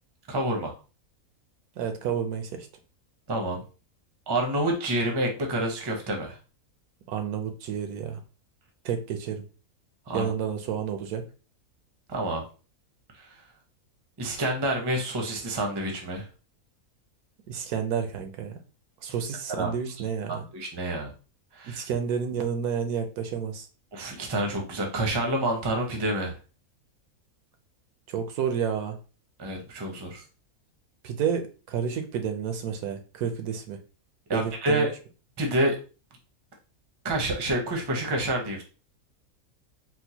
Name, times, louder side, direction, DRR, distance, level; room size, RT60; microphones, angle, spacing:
voice 1, 0.3-0.7 3.3-3.6 4.3-6.4 10.1-10.3 12.1-12.4 13.2-13.3 14.2-16.3 19.5-19.7 20.3-21.1 21.5-21.9 23.9-26.4 29.4-30.2 34.3-34.9 35.4-35.8 37.0-38.6, right 1 dB, 30° right, 2 dB, 0.4 m, -28 dB
voice 2, 1.8-2.7 7.1-8.2 8.8-9.4 10.1-11.2 17.5-18.6 19.0-20.4 21.7-23.7 28.1-29.0 31.0-33.8 34.3-34.9, right 7 dB, 85° right, 7 dB, 1.2 m, -30 dB
4.4 x 2.1 x 2.8 m, 0.34 s
omnidirectional pair, 1.5 m